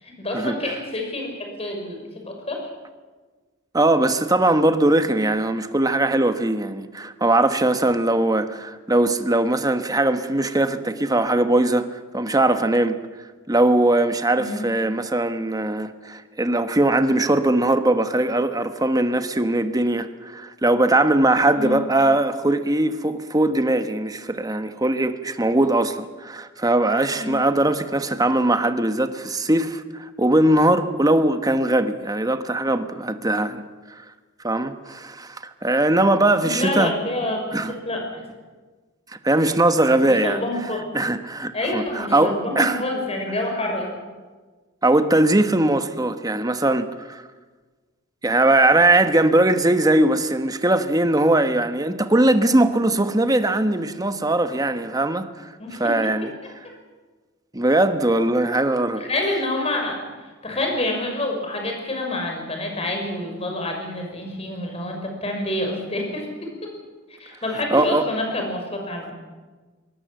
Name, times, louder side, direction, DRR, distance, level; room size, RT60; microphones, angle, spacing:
voice 1, 0.0-2.7 14.4-14.6 21.5-21.8 27.1-27.4 36.4-38.2 39.4-39.5 40.0-40.8 41.5-43.9 55.6-56.1 59.0-66.5 67.2-69.1, left 1 dB, 35° left, 5.9 m, -27 dB
voice 2, 3.7-13.0 13.5-33.6 33.9-34.0 34.4-36.9 37.5-37.7 39.2-40.4 40.9-42.8 44.8-47.2 48.2-55.5 55.8-56.3 57.5-59.0 67.7-68.0, right 1 dB, 20° right, 1.3 m, -20 dB
22.5 x 19.5 x 7.8 m
head